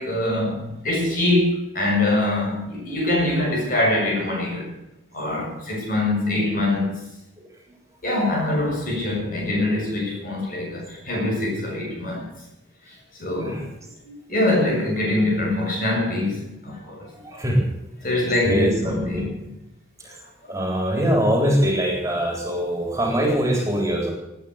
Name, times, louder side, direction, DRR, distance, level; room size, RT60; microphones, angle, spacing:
voice 1, 0.0-4.7 5.1-7.0 8.0-12.4 13.2-13.6 14.0-17.1 18.0-19.5, left 1 dB, 50° left, -1 dB, 7.3 m, -24 dB
voice 2, 17.2-17.7 18.4-19.2 20.0-20.2 20.5-24.1, equal, 15° right, 0 dB, 3.7 m, -22 dB
20.0 x 9.3 x 6.6 m, 0.95 s
head